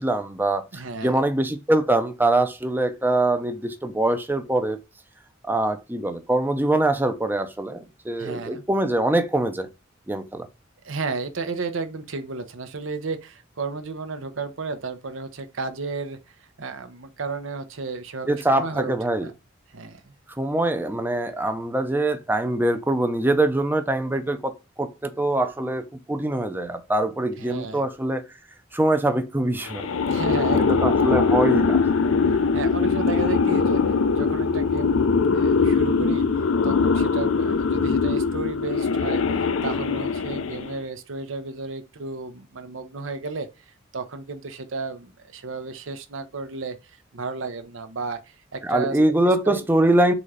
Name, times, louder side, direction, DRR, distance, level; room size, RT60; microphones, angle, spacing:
voice 1, 0.0-4.8 5.5-9.7 10.1-10.5 18.3-19.3 20.4-24.5 24.8-28.2 28.7-29.9 30.7-31.9 48.6-50.1, right 1 dB, 10° right, 0.5 m, -23 dB
voice 2, 0.7-1.2 8.2-8.6 10.8-19.3 19.7-20.1 27.4-27.8 30.1-30.9 32.2-36.3 36.6-43.5 43.9-49.0 49.4-49.6, right 4 dB, 75° right, 0.8 m, -33 dB
sound 1, 29.7-40.8, left 5 dB, 80° left, 0.5 m, -22 dB
4.0 x 3.7 x 3.3 m
head